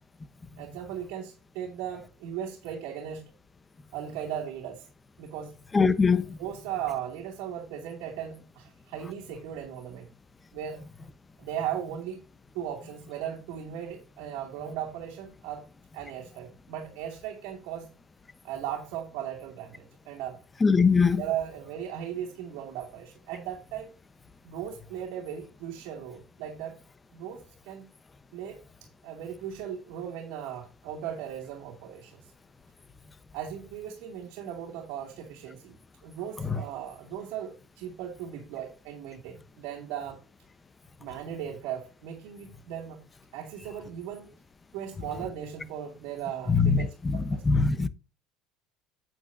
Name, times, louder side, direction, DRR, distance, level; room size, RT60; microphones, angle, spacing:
voice 1, 0.6-3.3 3.9-4.8 5.2-5.5 6.4-10.1 10.5-10.8 11.4-12.2 12.5-15.7 15.9-17.9 18.4-20.4 21.2-23.9 24.4-26.8 27.1-27.9 28.3-32.3 33.3-35.8 36.0-40.2 41.0-43.0 43.3-44.3 44.7-47.4, right 9 dB, 75° right, 2.5 m, -37 dB
voice 2, 5.7-6.2 20.6-21.2 46.5-47.2 47.5-47.9, left 5 dB, 20° left, 1.0 m, -21 dB
9.4 x 8.6 x 2.7 m
cardioid pair, 120°, 0 cm